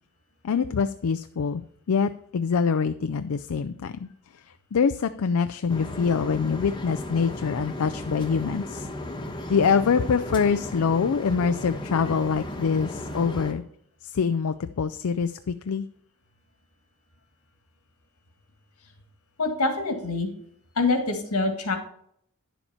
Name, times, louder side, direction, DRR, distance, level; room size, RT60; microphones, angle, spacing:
voice 1, 0.4-1.6 1.9-4.1 4.7-8.9 9.5-13.6 14.0-15.9, left 6 dB, 70° left, 10 dB, 0.4 m, -25 dB
sound 1, 5.7-13.5, left 1 dB, 20° left, 1.1 m, -35 dB
voice 2, 19.4-20.3 20.8-21.8, left 3 dB, 85° left, 5 dB, 2.0 m, -25 dB
10.0 x 7.1 x 4.3 m, 0.67 s
head